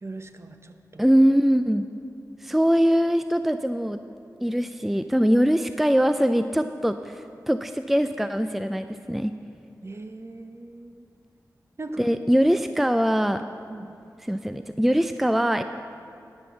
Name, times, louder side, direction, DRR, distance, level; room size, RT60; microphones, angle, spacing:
voice 1, 0.0-1.0 9.8-11.1 11.8-12.1 13.7-13.9, right 2 dB, 40° right, 7 dB, 0.8 m, -39 dB
voice 2, 1.0-1.9 2.4-4.0 4.4-9.3 12.0-13.4 14.2-15.6, equal, 5° right, 9 dB, 0.4 m, -22 dB
11.5 x 6.2 x 7.1 m, 2.5 s
cardioid pair, 40°, 7 cm